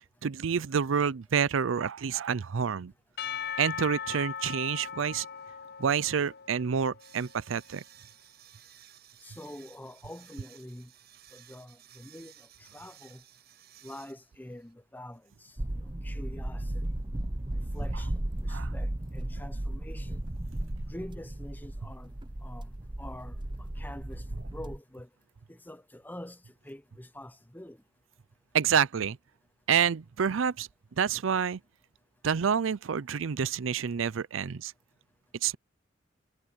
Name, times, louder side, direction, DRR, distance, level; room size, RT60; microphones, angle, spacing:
voice 1, 0.2-2.9 3.6-5.3 5.8-7.8 18.5-18.7 28.5-29.2 29.7-30.7 31.0-31.6 32.2-34.7 35.4-35.6, right 7 dB, 80° right, 0.5 m, -28 dB
Percussion / Church bell, 3.2-7.4, left 7 dB, 55° left, 0.6 m, -39 dB
sound 1, 7.0-14.7, right 11 dB, 55° right, 7.9 m, -56 dB
voice 2, 9.2-10.9 11.3-13.2 13.8-16.9 17.5-20.2 20.9-22.1 22.4-25.1 25.5-27.8, left 1 dB, 10° left, 1.1 m, -46 dB
sound 2, 15.6-24.8, right 1 dB, 25° right, 0.9 m, -35 dB
head